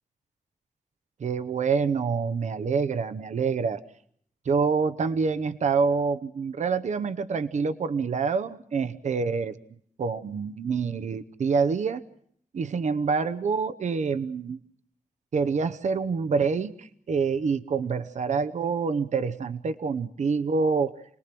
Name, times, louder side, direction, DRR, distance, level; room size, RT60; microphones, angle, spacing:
voice 1, 1.2-3.8 4.5-9.6 10.0-12.0 12.5-14.6 15.3-20.9, right 5 dB, 60° right, 11 dB, 0.9 m, -26 dB
29.0 x 20.0 x 6.0 m, 0.64 s
wide cardioid pair, 170°, 13 cm